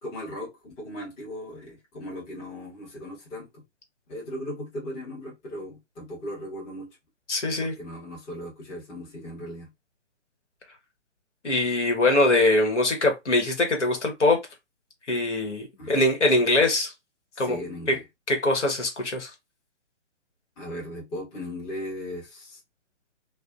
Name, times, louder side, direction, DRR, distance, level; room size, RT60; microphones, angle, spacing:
voice 1, 0.0-3.6 4.1-6.9 7.6-9.7 15.8-16.0 17.3-18.0 20.6-22.6, left 1 dB, 15° left, 1.1 m, -37 dB
voice 2, 7.3-7.7 11.4-14.4 15.1-16.9 17.4-17.6 17.9-18.0 18.3-19.3, left 2 dB, 75° left, 1.2 m, -22 dB
2.6 x 2.2 x 2.4 m
figure-of-eight pair, 130°, 36 cm